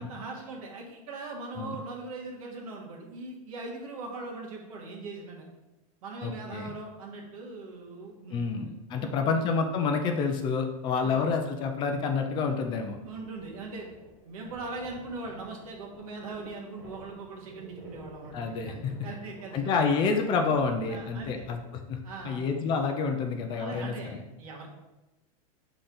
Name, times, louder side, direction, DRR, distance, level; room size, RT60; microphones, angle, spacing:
voice 1, 0.0-5.5 6.0-9.4 11.0-11.1 13.0-13.9 14.2-19.7 20.9-21.5 22.0-22.4 23.6-24.7, right 3 dB, 75° right, -1 dB, 1.7 m, -41 dB
voice 2, 6.2-6.7 8.3-13.0 18.3-18.9 19.5-21.6 21.9-22.0 22.2-24.2, left 5 dB, 25° left, 5 dB, 0.5 m, -28 dB
sound 1, 12.8-22.3, right 1 dB, 20° right, 1.7 m, -51 dB
6.1 x 3.9 x 3.9 m, 1.0 s
supercardioid pair, 160°, 18 cm